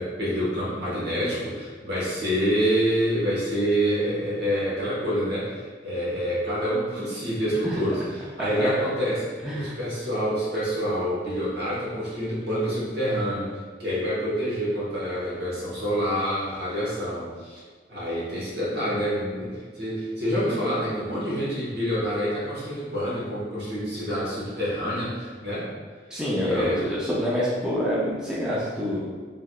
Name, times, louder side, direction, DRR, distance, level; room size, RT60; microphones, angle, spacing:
voice 1, 0.0-13.5 13.8-17.6 17.9-25.7 26.4-26.9, equal, 65° right, -8 dB, 1.2 m, -27 dB
voice 2, 8.4-8.7 9.4-9.8 26.1-29.1, equal, 5° right, -8 dB, 0.4 m, -27 dB
3.3 x 2.7 x 2.3 m, 1.5 s
head